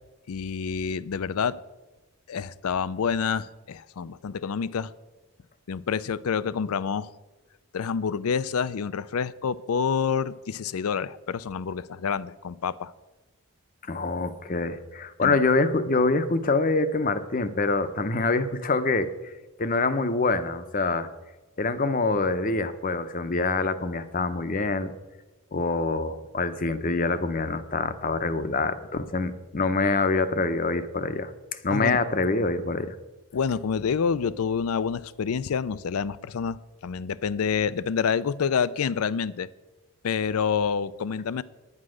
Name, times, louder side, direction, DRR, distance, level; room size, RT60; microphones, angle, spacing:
voice 1, 0.3-1.6 2.3-4.9 5.7-7.1 7.7-12.9 15.2-15.3 31.7-32.0 33.3-36.6 36.8-39.5 40.0-41.4, left 6 dB, 75° left, 18 dB, 0.4 m, -27 dB
voice 2, 13.9-19.3 19.6-21.1 21.6-24.9 25.5-31.3 31.6-32.9, left 3 dB, 35° left, 12 dB, 0.7 m, -25 dB
9.7 x 9.7 x 6.3 m, 1.1 s
head